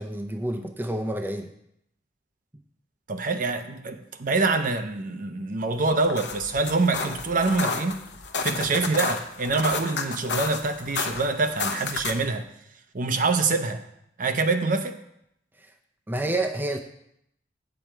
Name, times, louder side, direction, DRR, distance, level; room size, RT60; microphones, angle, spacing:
voice 1, 0.0-1.5 2.5-2.6 15.6-15.7 16.1-16.8, right 1 dB, 10° right, 4 dB, 0.5 m, -29 dB
voice 2, 3.1-8.0 8.4-12.4 12.9-13.8 14.2-15.0, right 3 dB, 50° right, 8 dB, 0.7 m, -25 dB
sound 1, 5.9-12.3, left 4 dB, 65° left, 0.8 m, -31 dB
8.6 x 7.0 x 4.5 m, 0.77 s
head